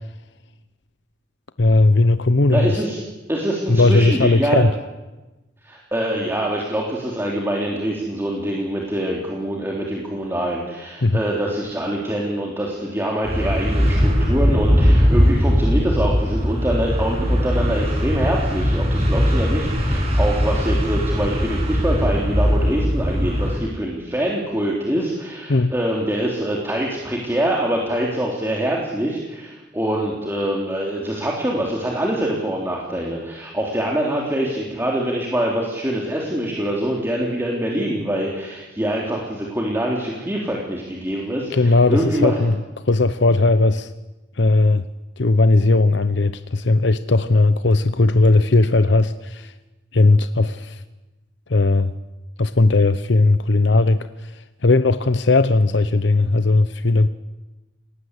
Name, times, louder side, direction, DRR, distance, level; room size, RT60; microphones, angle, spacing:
voice 1, 1.6-2.8 3.7-4.7 11.0-11.2 25.5-25.7 41.5-42.6 42.9-43.9 44.4-44.8 45.2-49.5 49.9-50.8 51.5-51.9 52.4-57.1, left 2 dB, 65° left, 11 dB, 0.8 m, -17 dB
voice 2, 2.5-3.0 3.3-4.6 5.6-42.4, right 1 dB, 10° right, -2 dB, 3.4 m, -24 dB
sound 1, 13.2-23.6, equal, 35° right, 7.5 m, -19 dB
29.5 x 19.5 x 8.2 m, 1.1 s
head